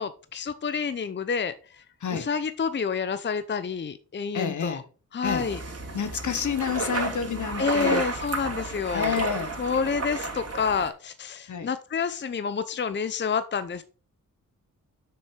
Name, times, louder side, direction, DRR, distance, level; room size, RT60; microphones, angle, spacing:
voice 1, 0.0-1.8 2.1-4.8 5.1-5.6 7.6-9.2 9.6-13.8, left 6 dB, 35° left, 0.6 m, -29 dB
voice 2, 4.3-4.8 5.2-5.5 5.9-8.0 8.9-9.6 11.5-11.7, left 7 dB, 65° left, 1.1 m, -29 dB
sound 1, 5.2-10.9, right 3 dB, 50° right, 2.3 m, -32 dB
6.8 x 6.5 x 4.6 m
cardioid pair, 85°, 32 cm